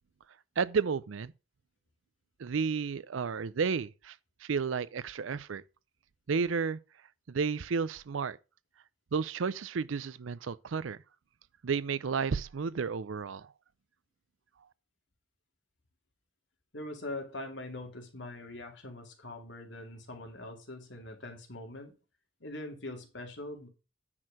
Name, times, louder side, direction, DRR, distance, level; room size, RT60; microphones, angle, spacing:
voice 1, 0.6-1.3 2.4-4.1 4.4-5.6 6.3-6.8 7.3-8.4 9.1-11.0 11.6-13.5, right 5 dB, 85° right, 0.5 m, -32 dB
voice 2, 16.7-21.9 22.4-23.7, left 2 dB, 65° left, 2.3 m, -42 dB
9.8 x 4.6 x 6.2 m
head